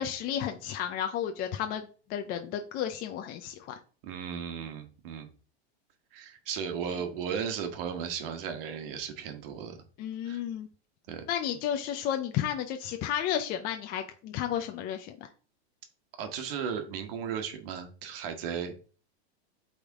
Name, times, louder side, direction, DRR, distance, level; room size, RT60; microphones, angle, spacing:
voice 1, 0.0-3.7 10.0-10.7 11.3-15.3, left 10 dB, 30° left, 6 dB, 0.5 m, -32 dB
voice 2, 4.0-5.3 6.1-9.8 10.2-10.4 11.1-11.2 16.2-18.7, right 7 dB, 55° right, 7 dB, 1.3 m, -35 dB
8.2 x 3.6 x 3.5 m, 0.38 s
supercardioid pair, 145°, 33 cm